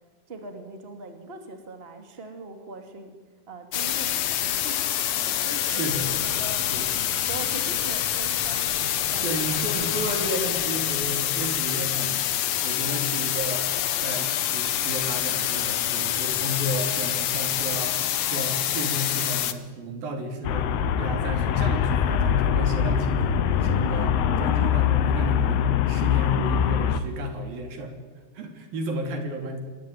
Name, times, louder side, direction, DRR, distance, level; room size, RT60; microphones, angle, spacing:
voice 1, 0.3-3.1 3.5-5.0 5.4-6.6 7.3-9.8, right 3 dB, 15° right, 6 dB, 2.3 m, -41 dB
sound 1, 3.7-19.5, left 11 dB, 70° left, 1.6 m, -26 dB
voice 2, 5.7-6.0 6.7-6.8 9.2-12.3 12.6-13.7 14.0-20.7 21.0-27.9 28.3-29.6, equal, 65° right, 5 dB, 4.8 m, -32 dB
sound 2, 5.8-11.1, equal, 40° right, 6.7 m, -44 dB
Traffic noise roadway noise, 20.4-27.0, left 8 dB, 85° left, 3.3 m, -23 dB
26.0 x 21.0 x 9.2 m, 1.4 s
omnidirectional pair, 4.5 m